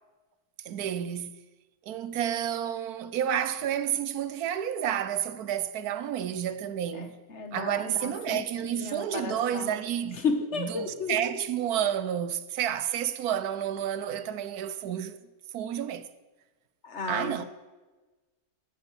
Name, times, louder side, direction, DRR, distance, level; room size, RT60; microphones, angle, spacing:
voice 1, 0.6-1.4 1.8-7.2 7.5-10.2 10.6-15.2 15.5-16.1 17.1-17.4, right 10 dB, 80° right, 1.2 m, -30 dB
voice 2, 6.9-8.4 8.7-9.8 10.2-11.2 16.8-17.4, left 4 dB, 50° left, 1.6 m, -33 dB
12.0 x 8.2 x 9.0 m
omnidirectional pair, 1.6 m